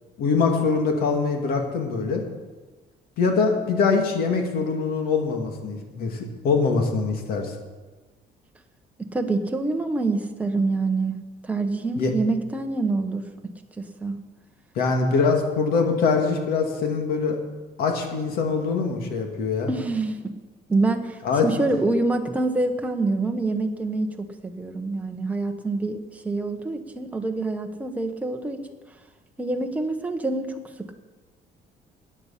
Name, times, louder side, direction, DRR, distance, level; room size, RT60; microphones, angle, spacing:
voice 1, 0.2-2.2 3.2-7.5 12.0-12.1 14.8-17.4 17.8-19.7 21.2-21.5, left 4 dB, 70° left, 3 dB, 2.3 m, -23 dB
voice 2, 9.0-11.2 11.4-13.2 13.8-14.2 19.7-20.2 20.7-28.7 29.4-30.9, right 3 dB, 10° right, 4 dB, 1.0 m, -26 dB
14.5 x 9.9 x 5.8 m, 1.3 s
cardioid pair, 165°, 16 cm